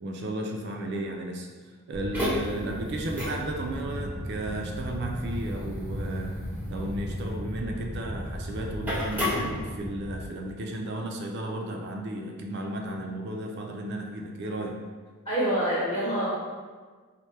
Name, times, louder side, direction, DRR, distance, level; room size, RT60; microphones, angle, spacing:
voice 1, 0.0-1.5 1.9-6.4 6.7-14.8, right 1 dB, 50° right, 2 dB, 0.3 m, -34 dB
sound 1, 1.9-10.2, left 1 dB, 10° right, 0.6 m, -33 dB
voice 2, 15.2-16.3, right 1 dB, 25° left, -9 dB, 0.9 m, -26 dB
4.3 x 2.1 x 3.2 m, 1.5 s
head